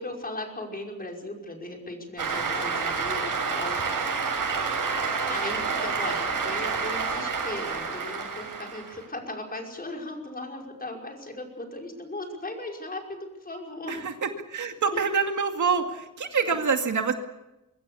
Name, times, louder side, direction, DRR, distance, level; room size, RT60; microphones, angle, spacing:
voice 1, 0.0-3.8 4.9-14.0 14.9-15.0 16.5-16.6, left 2 dB, 30° left, 1 dB, 5.5 m, -37 dB
Cheering / Applause, 2.2-9.0, right 5 dB, 85° right, 6.8 m, -29 dB
voice 2, 13.9-17.1, right 5 dB, 65° right, 5 dB, 2.3 m, -26 dB
25.0 x 24.0 x 7.1 m, 0.97 s
wide cardioid pair, 170°, 32 cm